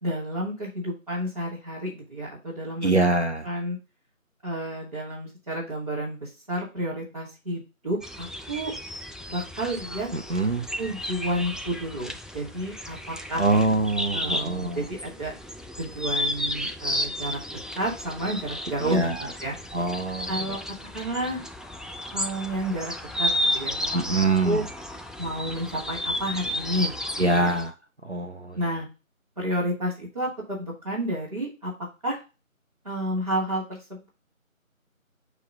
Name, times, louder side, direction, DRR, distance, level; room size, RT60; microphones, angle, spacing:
voice 1, 0.0-3.1 3.4-3.8 4.4-8.7 9.3-10.1 10.8-13.4 14.1-15.3 15.8-19.6 20.3-20.6 20.9-21.4 22.1-22.9 23.2-24.6 25.2-27.6 28.6-28.9 29.4-31.7 32.0-32.2 32.8-34.1, right 1 dB, 25° right, -10 dB, 2.7 m, -31 dB
voice 2, 2.8-3.4 10.3-10.7 13.4-14.8 18.9-19.1 19.7-20.6 23.9-24.6 27.2-27.7 28.0-28.6, right 2 dB, 55° right, 5 dB, 0.6 m, -24 dB
sound 1, 8.0-27.7, left 1 dB, ahead, 0.4 m, -33 dB
6.3 x 3.1 x 5.2 m, 0.29 s
figure-of-eight pair, 170°, 42 cm